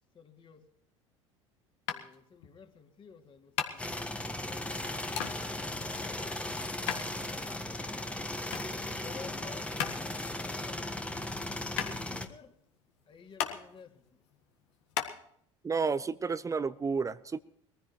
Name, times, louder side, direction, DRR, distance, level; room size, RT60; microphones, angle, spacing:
voice 1, 0.1-0.7 1.9-4.3 5.0-6.2 8.6-9.7 10.6-11.2 11.7-12.6 13.1-14.2, left 6 dB, 30° left, 4 dB, 2.6 m, -53 dB
sound 1, 1.9-15.1, left 10 dB, 65° left, 1.7 m, -39 dB
sound 2, 3.8-12.3, left 1 dB, 5° left, 1.5 m, -37 dB
voice 2, 15.6-17.4, right 5 dB, 20° right, 17 dB, 0.6 m, -31 dB
22.0 x 15.0 x 3.1 m, 0.69 s
figure-of-eight pair, 70°, 16 cm